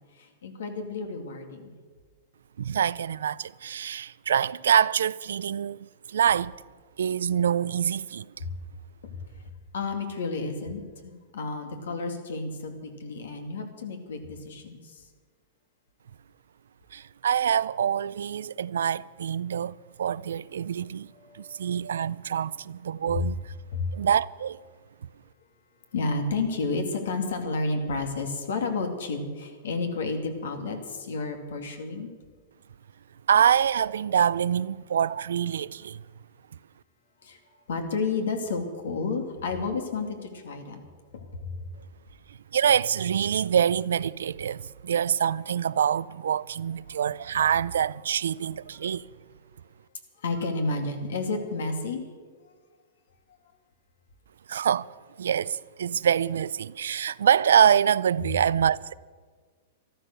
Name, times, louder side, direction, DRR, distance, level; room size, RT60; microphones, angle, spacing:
voice 1, 0.2-1.7 8.4-8.6 9.0-9.1 9.7-15.0 21.2-22.2 23.1-23.3 23.7-23.9 25.9-32.1 37.2-37.4 37.7-40.8 41.1-41.7 48.8-48.9 50.2-52.0, left 3 dB, 85° left, 2.4 m, -31 dB
voice 2, 2.6-6.6 7.0-8.3 16.9-23.4 23.9-24.6 33.3-36.0 42.5-49.1 54.5-54.9 55.2-58.9, right 8 dB, 90° right, 0.4 m, -25 dB
13.5 x 12.5 x 6.7 m
hypercardioid pair, 140°, 0 cm